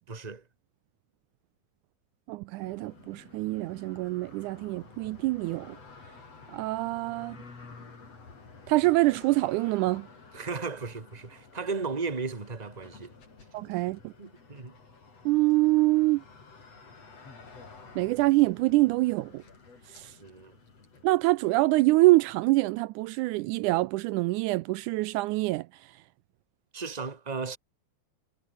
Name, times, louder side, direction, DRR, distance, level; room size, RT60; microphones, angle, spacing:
voice 1, 0.1-0.4 10.3-13.1 14.2-14.8 20.2-20.6 26.7-27.6, right 4 dB, 15° right, 1.9 m, -35 dB
voice 2, 2.3-5.8 6.5-7.4 8.7-10.1 13.5-14.1 15.3-16.2 18.0-19.4 19.9-20.1 21.0-25.7, right 20 dB, 80° right, 1.9 m, -25 dB
sound 1, 2.6-21.0, left 4 dB, 50° left, 6.0 m, -51 dB
omnidirectional pair, 3.6 m